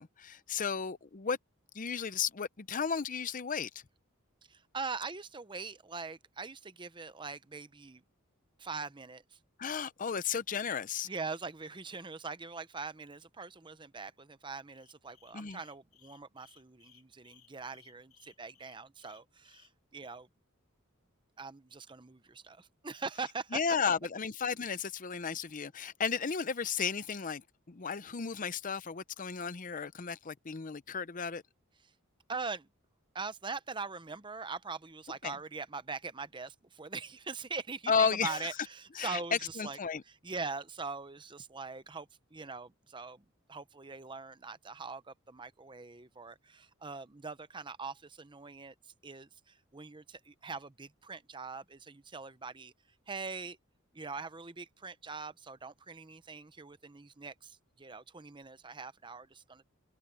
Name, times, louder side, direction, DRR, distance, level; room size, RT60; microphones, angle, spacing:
voice 1, 0.0-1.4 1.7-3.7 9.6-11.1 15.3-15.6 23.5-27.4 27.7-31.4 35.2-35.4 37.9-38.5 38.9-40.0, left 6 dB, 40° left, 0.7 m, -33 dB
voice 2, 4.5-8.0 8.6-9.4 11.1-20.3 21.4-23.6 32.3-32.7 33.1-39.8 40.2-48.7 49.0-52.7 53.1-53.6 53.9-59.6, right 4 dB, 20° right, 0.8 m, -42 dB
sound 1, 14.7-19.7, left 10 dB, 85° left, 3.6 m, -63 dB
open air
head